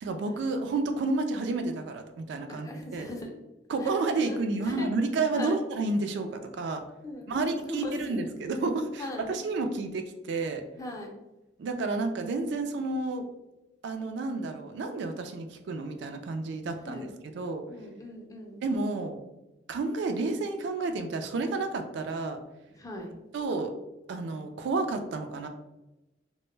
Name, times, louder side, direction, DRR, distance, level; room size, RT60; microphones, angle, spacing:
voice 1, 0.0-3.1 3.7-6.8 7.3-10.6 11.6-13.3 13.8-17.6 18.6-19.2 19.7-22.4 23.3-23.7 24.1-25.5, right 3 dB, 65° right, 6 dB, 0.3 m, -30 dB
voice 2, 2.5-3.4 3.8-4.9 5.3-5.6 7.0-8.2 9.0-9.3 10.8-11.1 16.9-17.1 17.7-18.6 22.8-23.1, left 1 dB, 20° left, 1 dB, 0.4 m, -39 dB
2.1 x 2.0 x 3.1 m, 0.98 s
head